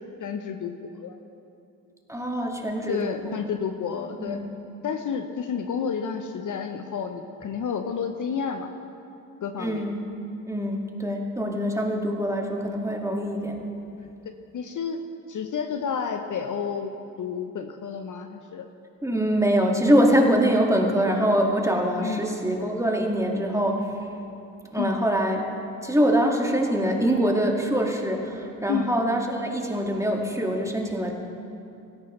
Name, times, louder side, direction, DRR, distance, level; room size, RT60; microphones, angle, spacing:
voice 1, 0.2-1.2 2.9-4.4 4.8-8.7 9.4-9.8 14.5-15.0 15.3-16.9 17.2-18.7 22.0-22.2 24.8-24.9 28.7-28.9, left 6 dB, 45° left, 6 dB, 0.9 m, -30 dB
voice 2, 2.1-3.4 4.2-4.4 9.6-10.0 10.5-13.6 19.0-23.9 24.7-25.4 25.8-31.1, equal, 5° right, 1 dB, 2.1 m, -24 dB
17.0 x 13.5 x 3.2 m, 2.7 s
hypercardioid pair, 45°, 42 cm